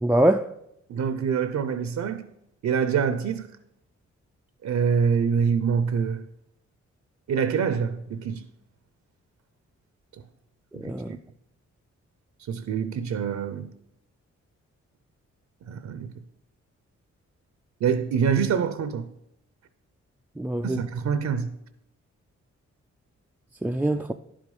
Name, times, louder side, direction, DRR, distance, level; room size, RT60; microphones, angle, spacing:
voice 1, 0.0-0.5 10.8-11.2 20.4-20.8 23.6-24.1, right 1 dB, 5° right, 0.3 m, -23 dB
voice 2, 0.9-2.2 2.6-3.5 4.6-6.2 7.3-8.4 10.7-11.2 12.5-13.7 15.7-16.1 17.8-19.1 20.6-21.5, right 6 dB, 70° right, 0.6 m, -25 dB
10.5 x 5.0 x 5.4 m
cardioid pair, 70°, 29 cm